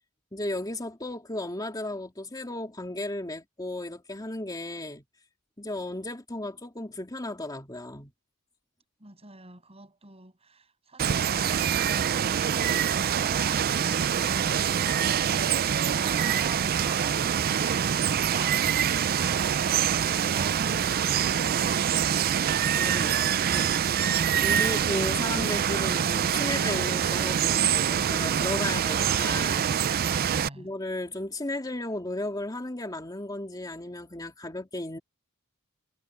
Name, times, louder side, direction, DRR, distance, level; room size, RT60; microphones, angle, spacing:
voice 1, 0.3-5.0 5.6-8.1 22.7-24.0 24.4-29.8 30.5-35.0, left 1 dB, 20° left, 3.1 m, -35 dB
voice 2, 9.0-17.9 18.1-21.9 30.2-30.7, right 2 dB, 25° right, 7.3 m, -44 dB
Water, 11.0-30.5, right 8 dB, 45° right, 0.4 m, -25 dB
head